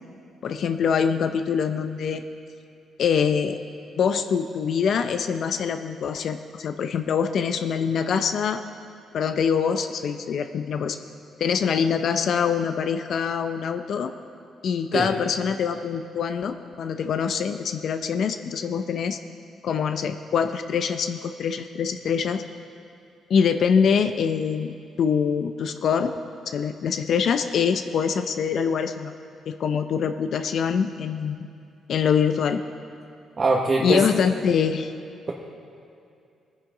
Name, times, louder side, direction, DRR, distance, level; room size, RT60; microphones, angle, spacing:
voice 1, 0.4-2.2 3.0-3.6 4.0-8.6 9.1-11.0 11.4-14.1 14.6-19.2 19.6-22.4 23.3-26.1 26.5-29.1 29.5-31.4 31.9-32.6 33.8-34.9, left 6 dB, 65° left, 8 dB, 0.5 m, -24 dB
voice 2, 33.4-34.0, right 3 dB, 35° right, -2 dB, 1.1 m, -22 dB
18.5 x 10.0 x 3.8 m, 2.4 s
cardioid pair, 90°, 0 cm